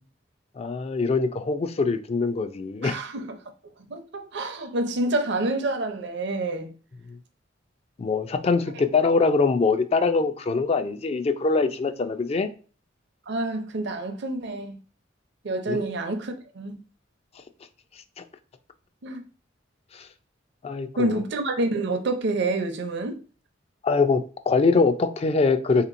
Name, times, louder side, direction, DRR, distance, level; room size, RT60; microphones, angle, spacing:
voice 1, 0.6-3.0 8.0-12.5 15.7-15.8 18.2-18.3 19.9-20.1 20.6-21.2 23.8-25.9, left 4 dB, 35° left, 0.3 m, -23 dB
voice 2, 2.8-3.4 3.9-6.7 13.3-14.8 15.4-16.8 19.0-19.2 21.0-23.2, right 2 dB, 65° right, 0.6 m, -28 dB
3.6 x 2.9 x 2.5 m
head